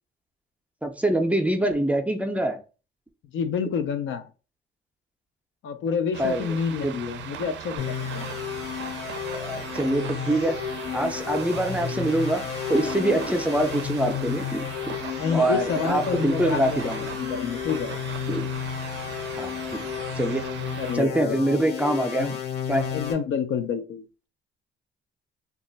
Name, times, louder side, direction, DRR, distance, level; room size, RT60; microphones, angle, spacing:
voice 1, 0.8-2.6 6.2-6.6 6.8-6.9 9.3-10.6 10.9-15.0 15.3-17.1 18.3-18.5 19.4-19.8 20.1-20.4 20.9-22.3 22.7-22.9, right 1 dB, 5° right, 5 dB, 0.5 m, -25 dB
voice 2, 3.3-4.3 5.6-8.3 15.2-16.8 17.1-17.9 20.8-21.4 22.1-22.4 22.9-24.3, left 6 dB, 75° left, 8 dB, 0.5 m, -28 dB
sound 1, 6.1-21.0, right 9 dB, 65° right, 0.4 m, -39 dB
sound 2, 7.8-23.1, left 8 dB, 50° left, 1.0 m, -32 dB
2.3 x 2.0 x 3.8 m, 0.34 s
cardioid pair, 90°, 20 cm